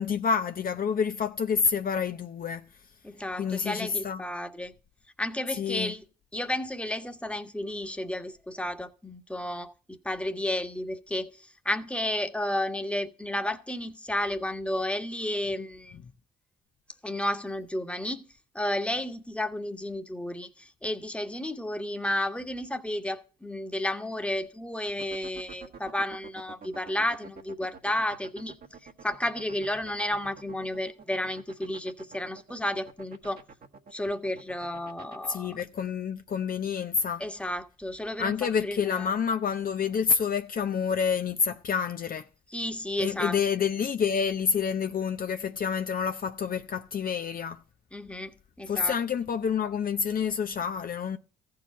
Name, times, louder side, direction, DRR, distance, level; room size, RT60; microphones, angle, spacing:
voice 1, 0.0-2.6 3.4-4.2 5.6-5.9 35.3-37.2 38.2-42.3 43.0-47.6 48.7-51.2, left 6 dB, 45° left, 0.7 m, -28 dB
voice 2, 3.0-4.7 5.2-6.0 6.3-16.0 17.0-18.2 18.5-33.4 33.9-35.6 37.2-39.1 42.5-43.4 47.9-48.9, left 1 dB, 5° left, 1.4 m, -32 dB
sound 1, 24.9-35.3, right 5 dB, 50° right, 1.6 m, -47 dB
14.5 x 4.9 x 9.1 m
supercardioid pair, 60°, 20 cm